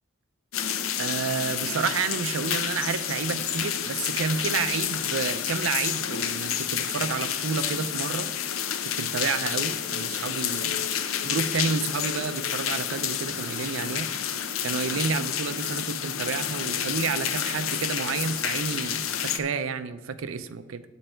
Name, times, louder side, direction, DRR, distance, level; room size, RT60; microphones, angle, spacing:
sound 1, 0.5-19.4, left 9 dB, 85° left, 0.6 m, -29 dB
voice 1, 1.0-8.3 9.0-10.8 11.2-14.1 14.6-20.8, right 5 dB, 75° right, 12 dB, 0.5 m, -30 dB
8.8 x 7.7 x 4.4 m, 1.3 s
head